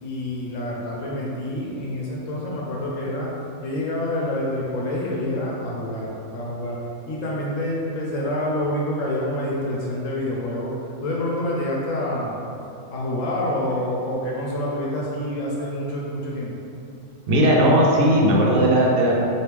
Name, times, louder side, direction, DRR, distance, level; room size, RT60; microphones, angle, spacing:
voice 1, 0.0-3.3 3.6-6.8 7.1-10.7 11.0-12.4 12.9-16.6, left 1 dB, 75° left, -4 dB, 0.9 m, -27 dB
voice 2, 17.3-19.2, equal, 90° right, -3 dB, 1.1 m, -17 dB
3.0 x 2.8 x 3.3 m, 2.6 s
omnidirectional pair, 1.4 m